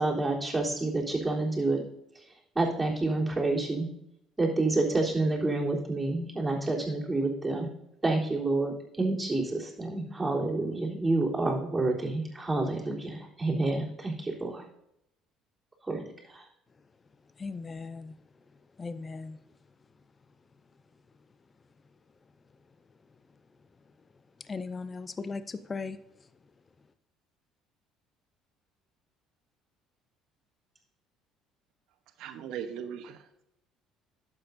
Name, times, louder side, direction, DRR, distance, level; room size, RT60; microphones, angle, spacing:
voice 1, 0.0-1.9 2.6-3.9 4.4-7.7 8.0-14.6 15.9-16.4, right 2 dB, 15° right, 3.6 m, -28 dB
voice 2, 17.4-18.1 18.8-19.4 24.5-26.0, left 4 dB, 30° left, 0.5 m, -37 dB
voice 3, 32.2-33.4, right 8 dB, 70° right, 1.0 m, -39 dB
11.5 x 8.1 x 2.7 m
hypercardioid pair, 65°, 0 cm